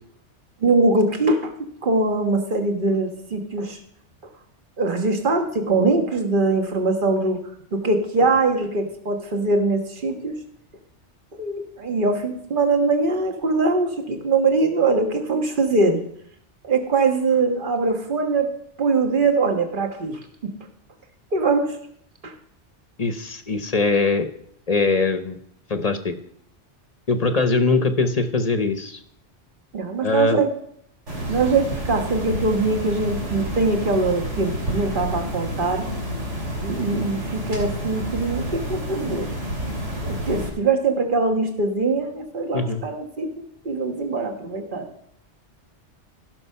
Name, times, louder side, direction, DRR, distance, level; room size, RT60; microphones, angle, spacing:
voice 1, 0.6-1.5 1.8-3.8 4.8-7.4 7.7-10.3 11.4-16.0 16.6-18.5 18.8-20.5 21.3-21.8 22.2-22.3 29.7-30.5 31.3-35.9 36.6-39.3 40.0-44.9, right 3 dB, 45° right, 5 dB, 1.6 m, -22 dB
voice 2, 23.0-24.3 24.7-25.4 25.7-26.1 27.1-29.0 30.0-30.4 42.5-42.8, left 3 dB, 35° left, 9 dB, 0.8 m, -22 dB
sound 1, 31.1-40.5, right 1 dB, 90° right, 3.6 m, -29 dB
15.5 x 6.2 x 5.6 m, 0.68 s
omnidirectional pair, 1.2 m